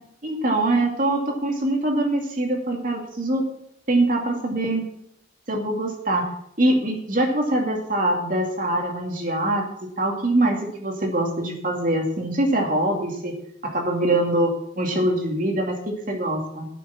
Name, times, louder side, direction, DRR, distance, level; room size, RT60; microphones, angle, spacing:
voice 1, 0.2-3.4 3.9-4.8 5.5-6.3 6.6-13.3 13.6-16.7, right 1 dB, 50° right, 2 dB, 2.4 m, -23 dB
9.3 x 7.2 x 7.3 m, 0.72 s
head